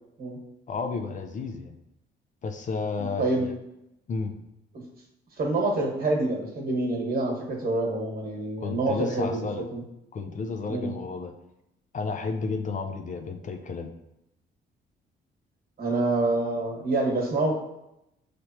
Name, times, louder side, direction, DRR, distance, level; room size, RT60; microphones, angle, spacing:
voice 1, 0.7-1.8 2.4-3.5 4.1-4.4 8.6-9.6 10.1-11.3 11.9-13.9, left 4 dB, 40° left, 5 dB, 0.5 m, -32 dB
voice 2, 3.0-3.5 5.4-9.4 9.7-9.8 10.7-10.9 15.8-17.5, right 2 dB, 50° right, 0 dB, 1.4 m, -27 dB
5.4 x 3.3 x 2.9 m, 0.86 s
cardioid pair, 90°, 20 cm